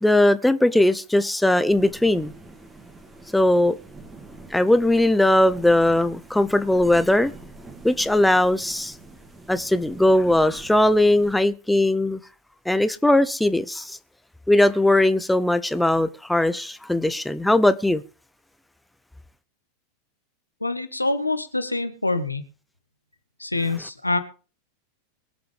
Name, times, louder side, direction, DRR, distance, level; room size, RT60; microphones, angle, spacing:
voice 1, 0.0-2.3 3.3-3.8 4.5-7.3 7.8-8.9 9.5-12.2 12.7-14.0 14.5-18.0, left 1 dB, 5° left, 0.8 m, -19 dB
sound 1, 1.7-11.4, right 2 dB, 15° right, 2.3 m, -45 dB
voice 2, 20.6-22.4 23.4-24.2, left 2 dB, 85° left, 1.4 m, -25 dB
23.0 x 7.8 x 3.5 m
figure-of-eight pair, 90°, 0 cm